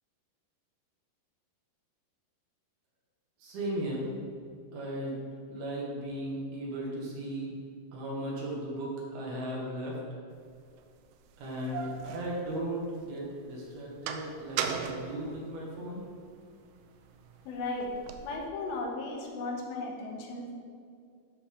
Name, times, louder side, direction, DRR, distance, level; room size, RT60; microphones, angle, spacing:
voice 1, 3.4-4.1 4.7-5.2 5.5-7.5 7.9-10.0 11.4-16.0, right 1 dB, 65° right, -4 dB, 3.3 m, -36 dB
sound 1, 10.5-10.6 11.3-13.1 13.5-16.1 16.6-18.4, right 7 dB, 85° right, 2.7 m, -38 dB
voice 2, 17.5-17.9 18.2-20.5, left 2 dB, 90° left, 0 dB, 3.5 m, -36 dB
13.0 x 5.7 x 3.7 m, 2.3 s
omnidirectional pair, 5.0 m